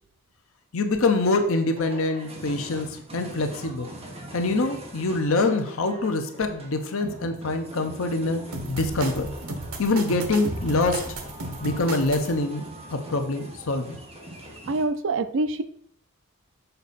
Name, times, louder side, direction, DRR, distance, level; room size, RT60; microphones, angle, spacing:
voice 1, 0.7-3.9 4.3-8.4 8.7-9.3 9.8-11.1 11.6-12.6 12.9-14.0, left 2 dB, 70° left, 6 dB, 0.8 m, -25 dB
sound 1, 1.7-14.8, right 1 dB, 25° right, 1.4 m, -42 dB
sound 2, 8.5-12.3, right 2 dB, 85° right, 1.0 m, -34 dB
voice 2, 14.7-15.6, right 2 dB, 60° right, 12 dB, 0.4 m, -25 dB
6.7 x 4.7 x 4.2 m, 0.64 s
head